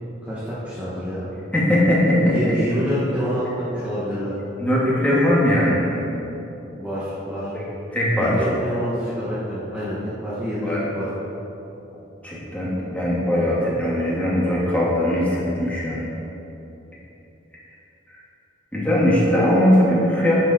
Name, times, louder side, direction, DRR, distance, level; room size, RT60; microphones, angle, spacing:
voice 1, 0.2-1.3 2.3-4.3 6.8-7.5 8.2-10.0 10.2-11.1, equal, 5° right, -11 dB, 2.0 m, -27 dB
voice 2, 1.5-2.4 4.6-6.0 7.5-7.6 7.9-8.3 10.6-10.8 12.2-16.1 18.7-20.4, left 1 dB, 10° left, -7 dB, 2.6 m, -20 dB
11.0 x 9.2 x 4.6 m, 3.0 s
head